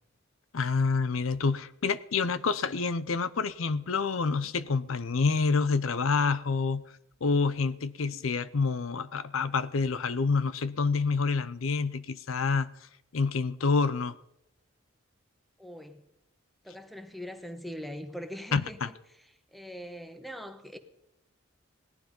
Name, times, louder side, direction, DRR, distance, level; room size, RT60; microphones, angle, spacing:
voice 1, 0.5-6.9 7.2-12.7 13.1-14.2 18.5-18.9, left 4 dB, 80° left, 0.6 m, -27 dB
voice 2, 15.6-16.0 16.6-18.9 19.5-20.8, equal, ahead, 1.1 m, -41 dB
18.0 x 11.5 x 5.3 m
head